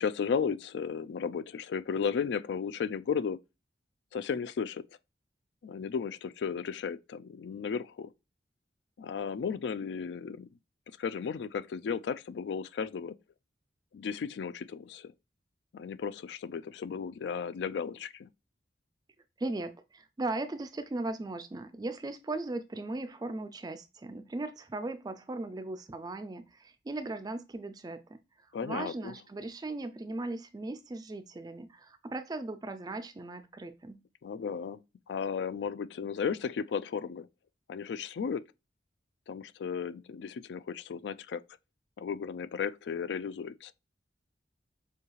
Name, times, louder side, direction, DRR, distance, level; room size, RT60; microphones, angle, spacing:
voice 1, 0.0-3.4 4.1-4.8 5.6-8.1 9.0-10.5 11.0-13.2 13.9-15.1 15.7-18.3 28.5-29.1 34.2-34.8 35.1-37.3 37.7-38.4 39.3-41.4 42.0-43.7, left 6 dB, 75° left, 0.3 m, -34 dB
voice 2, 19.4-28.2 28.6-34.0, right 2 dB, 20° right, 0.3 m, -38 dB
7.0 x 2.3 x 3.1 m
head